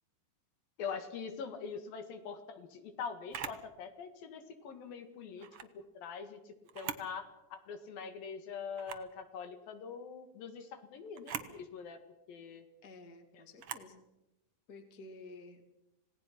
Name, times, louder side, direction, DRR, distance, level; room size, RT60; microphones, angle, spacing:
voice 1, 0.8-5.5 5.8-12.0 12.3-12.6 13.3-13.4, left 6 dB, 75° left, 7 dB, 3.5 m, -44 dB
Camera, 3.3-3.6 5.4-5.7 6.6-7.1 7.6-7.7 8.7-9.1 11.1-11.5 13.6-13.9, right 8 dB, 65° right, 1.4 m, -42 dB
voice 2, 12.8-14.0 14.7-15.7, left 2 dB, 30° left, 7 dB, 2.4 m, -52 dB
27.0 x 18.0 x 6.0 m, 0.92 s
omnidirectional pair, 4.2 m